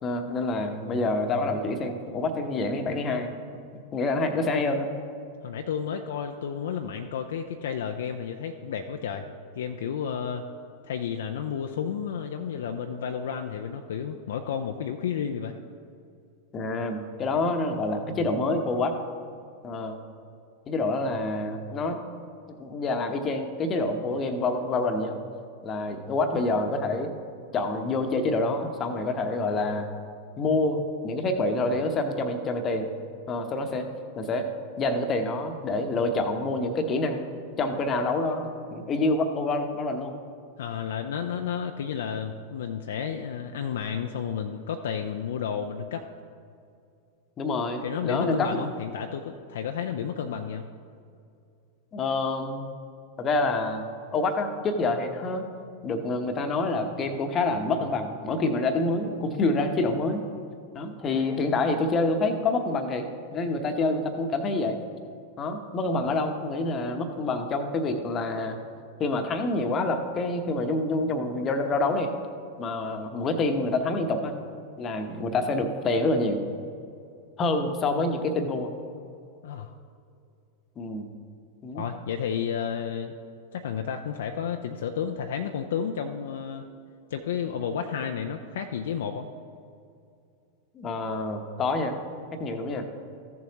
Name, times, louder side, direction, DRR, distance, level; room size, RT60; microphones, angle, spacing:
voice 1, 0.0-3.3 3.7-4.9 16.5-18.9 19.6-20.0 20.7-22.0 22.6-25.1 25.6-27.1 27.5-29.9 30.4-32.9 33.3-33.9 34.2-34.5 34.8-37.2 37.6-40.2 47.4-48.5 51.9-52.7 53.2-53.8 54.1-55.5 55.8-60.2 60.7-64.8 65.4-68.6 69.0-72.1 72.6-74.3 74.8-76.4 77.4-78.7 80.8-81.1 81.6-81.8 90.7-91.9 92.4-92.9, left 2 dB, 25° left, 7 dB, 0.9 m, -27 dB
voice 2, 5.4-9.3 9.6-10.5 10.8-15.6 40.6-46.0 47.8-50.7 65.9-66.1 79.4-79.7 81.7-83.1 83.5-86.7 87.1-89.3, left 7 dB, 60° left, 5 dB, 0.4 m, -31 dB
14.0 x 7.2 x 3.0 m, 2.5 s
figure-of-eight pair, 90°, 0 cm